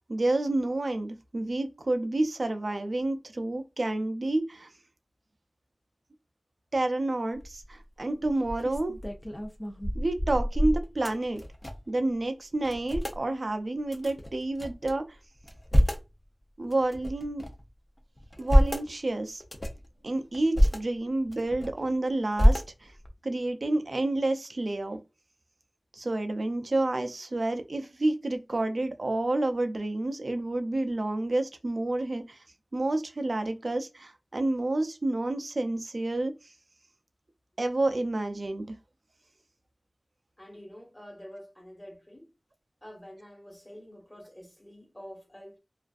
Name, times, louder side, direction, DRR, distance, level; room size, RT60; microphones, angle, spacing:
voice 1, 0.0-4.7 6.7-9.0 9.9-11.4 11.9-15.2 16.6-17.5 18.4-19.4 20.0-22.9 23.2-25.0 25.9-32.4 32.7-36.5 37.6-38.7, right 2 dB, 60° right, 0.4 m, -29 dB
sound 1, 7.3-7.7 8.2-12.0 12.2-12.3 12.6-13.2 13.9-14.9 15.4-16.1 16.7-17.6 18.2-18.9 19.4-19.9 20.3-20.8 21.3-21.9 22.3-23.1, equal, 30° left, 0.5 m, -26 dB
voice 2, 40.4-42.3 42.8-45.6, equal, 10° left, 1.2 m, -47 dB
2.4 x 2.4 x 2.3 m
wide cardioid pair, 65°, 0 cm